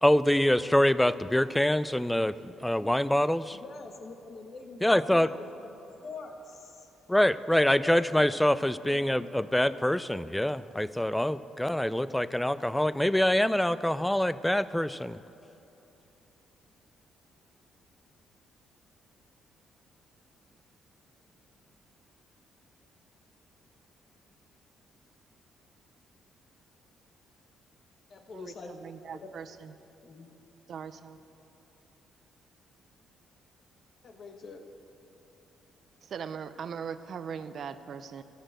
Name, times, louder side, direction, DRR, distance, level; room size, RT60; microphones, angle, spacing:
voice 1, 0.0-3.6 4.8-5.3 7.1-15.2, left 1 dB, 5° left, 16 dB, 0.3 m, -25 dB
voice 2, 3.5-5.7 6.0-6.9 7.8-8.4 8.8-9.3 28.1-28.7 29.1-29.3 30.0-30.3 34.0-34.6, left 3 dB, 50° left, 4 dB, 1.4 m, -44 dB
voice 3, 28.3-29.7 30.7-31.2 36.0-38.2, right 7 dB, 60° right, 12 dB, 0.6 m, -40 dB
14.0 x 6.9 x 7.9 m, 3.0 s
cardioid pair, 90°, 0 cm